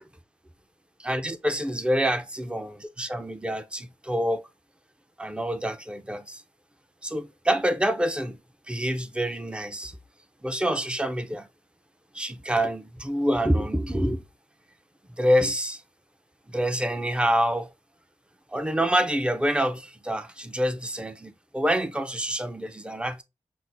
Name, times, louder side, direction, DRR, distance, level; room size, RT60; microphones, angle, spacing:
voice 1, 1.0-4.4 5.2-6.4 7.0-8.4 8.7-9.9 10.4-11.5 12.1-14.2 15.2-15.8 16.5-17.7 18.5-23.2, equal, 10° right, 0.6 m, -26 dB
6.0 x 2.1 x 3.9 m
wide cardioid pair, 85°, 13 cm